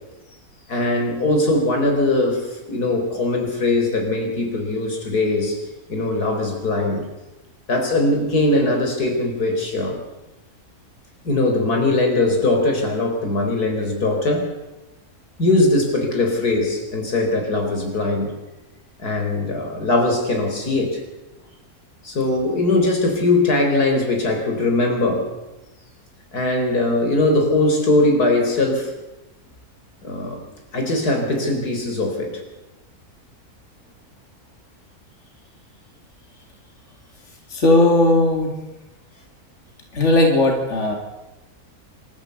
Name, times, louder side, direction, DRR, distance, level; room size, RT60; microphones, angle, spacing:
voice 1, 0.7-5.6 5.9-7.0 7.7-10.0 11.2-14.5 15.4-18.3 19.0-21.0 22.0-25.3 26.3-28.9 30.0-30.5 30.7-32.3, left 2 dB, 90° left, 3 dB, 4.4 m, -20 dB
voice 2, 37.5-38.5 39.9-41.0, left 2 dB, 50° left, 3 dB, 3.4 m, -16 dB
27.0 x 13.5 x 8.2 m, 1.0 s
omnidirectional pair, 1.6 m